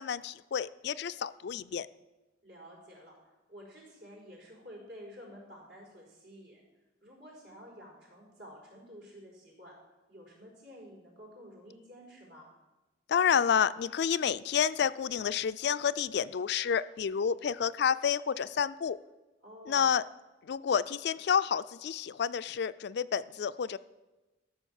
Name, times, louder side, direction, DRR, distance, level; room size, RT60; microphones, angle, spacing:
voice 1, 0.0-1.9 13.1-19.0 19.7-20.0 20.5-23.8, left 7 dB, 60° left, 15 dB, 0.4 m, -29 dB
voice 2, 2.4-6.6 7.0-9.8 10.1-12.5 19.4-19.8, equal, 70° right, -2 dB, 4.6 m, -51 dB
13.0 x 6.4 x 7.1 m, 1.1 s
head